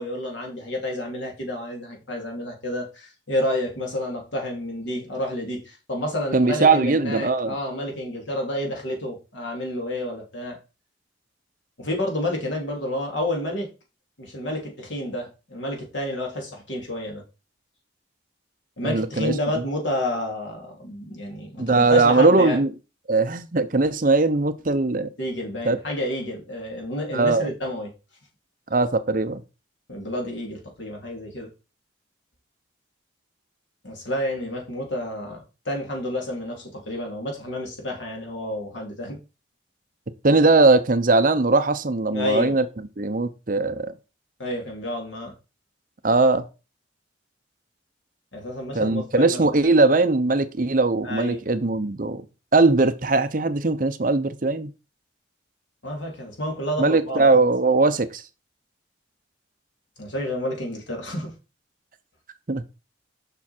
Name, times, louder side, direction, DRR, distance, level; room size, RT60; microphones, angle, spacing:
voice 1, 0.0-10.6 11.8-13.7 14.2-17.2 18.8-22.6 25.2-27.9 29.9-31.5 33.8-39.2 42.1-42.6 44.4-45.3 48.3-49.6 51.0-51.4 55.8-57.5 60.0-61.3, left 1 dB, 75° left, 3.0 m, -30 dB
voice 2, 6.3-7.5 18.8-19.3 21.6-22.7 23.1-25.1 25.6-25.8 27.1-27.5 28.7-29.4 40.2-43.9 46.0-46.5 48.7-52.2 52.5-54.7 56.8-58.2 62.5-62.6, right 3 dB, 45° right, 0.7 m, -20 dB
7.0 x 6.0 x 4.3 m
head